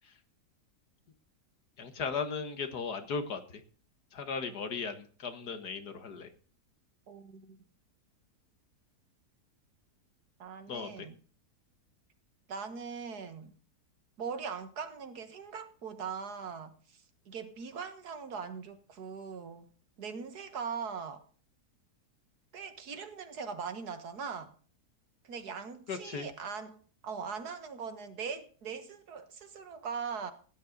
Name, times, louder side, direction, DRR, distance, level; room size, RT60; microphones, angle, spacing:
voice 1, 1.8-3.4 4.1-6.3 10.7-11.1 25.9-26.3, left 5 dB, 75° left, 2.0 m, -36 dB
voice 2, 7.1-7.6 10.4-11.2 12.5-13.5 14.2-19.6 20.0-21.2 22.5-24.5 25.2-30.3, right 6 dB, 75° right, 1.9 m, -41 dB
16.5 x 9.8 x 4.0 m
omnidirectional pair, 1.7 m